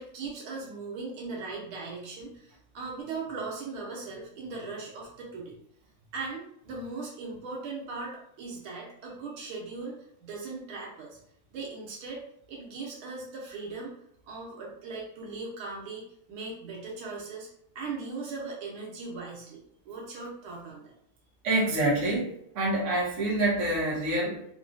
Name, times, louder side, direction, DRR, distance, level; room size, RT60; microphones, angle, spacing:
voice 1, 0.0-5.6 6.1-11.2 11.5-13.9 14.3-17.5 17.8-19.6 19.9-20.9, right 3 dB, 75° right, -3 dB, 1.7 m, -39 dB
voice 2, 21.4-24.4, right 1 dB, 45° right, -5 dB, 1.0 m, -27 dB
4.2 x 2.3 x 2.6 m, 0.71 s
omnidirectional pair, 2.4 m